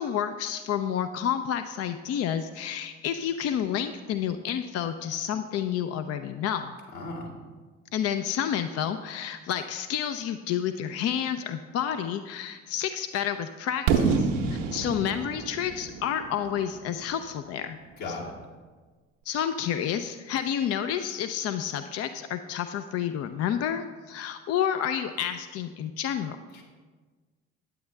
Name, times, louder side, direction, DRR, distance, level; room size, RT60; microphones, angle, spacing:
voice 1, 0.0-6.7 7.9-17.8 18.1-18.2 19.3-26.4, left 9 dB, 40° left, 9 dB, 0.5 m, -30 dB
voice 2, 6.9-7.3 18.0-18.3 26.5-26.6, left 3 dB, 70° left, -5 dB, 2.5 m, -36 dB
Fireworks, 13.9-17.7, right 5 dB, 75° right, 0.9 m, -28 dB
9.3 x 8.6 x 3.2 m, 1.4 s
hypercardioid pair, 55°, 38 cm